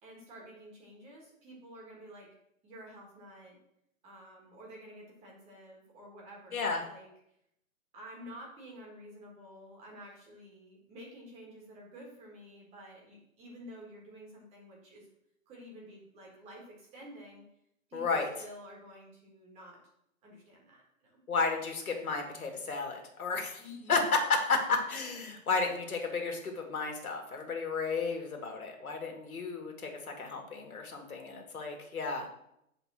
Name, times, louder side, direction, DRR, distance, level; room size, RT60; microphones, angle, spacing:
voice 1, 0.0-2.3 2.6-3.6 4.0-7.1 7.9-15.1 15.5-17.4 17.9-19.8 20.2-21.2 23.6-24.0, equal, 15° right, -1 dB, 1.6 m, -50 dB
voice 2, 6.5-6.8 17.9-18.3 21.3-23.6 23.9-32.3, left 4 dB, 85° left, 2 dB, 2.1 m, -32 dB
7.9 x 3.7 x 6.1 m, 0.77 s
hypercardioid pair, 155°, 42 cm